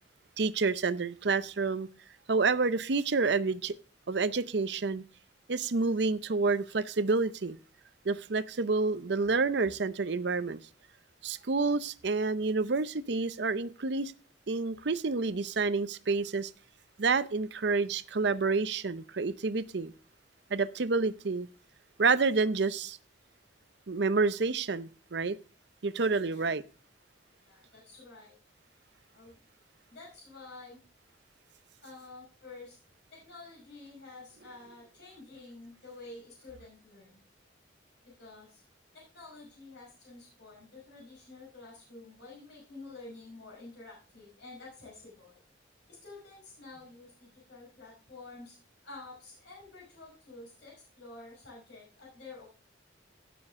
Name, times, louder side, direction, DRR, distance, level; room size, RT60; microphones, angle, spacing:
voice 1, 0.4-1.9 2.3-3.7 4.1-5.0 5.5-7.6 8.0-10.6 11.2-14.1 14.5-16.5 17.0-19.9 20.5-21.5 22.0-23.0 23.9-25.4 25.8-26.6, right 4 dB, 60° right, 0.6 m, -29 dB
voice 2, 27.4-28.4 29.1-29.4 29.9-30.8 31.8-32.8 33.1-37.2 38.0-38.6 38.9-45.4 45.9-48.6 48.8-52.5, left 3 dB, 65° left, 5.3 m, -49 dB
17.0 x 7.0 x 3.7 m
head